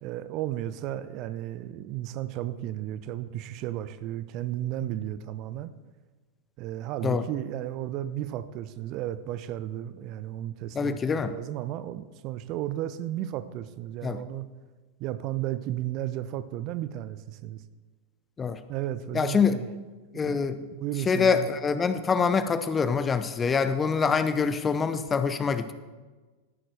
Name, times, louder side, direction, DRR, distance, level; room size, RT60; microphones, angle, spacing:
voice 1, 0.0-5.7 6.6-14.5 15.0-17.6 18.7-19.7 20.1-21.5, right 13 dB, 40° right, 14 dB, 0.5 m, -34 dB
voice 2, 10.7-11.3 14.0-14.2 18.4-18.6 19.1-19.6 20.1-20.6 21.1-25.7, left 5 dB, 20° left, 11 dB, 0.6 m, -25 dB
13.5 x 11.0 x 3.4 m, 1.3 s
figure-of-eight pair, 90°, 0 cm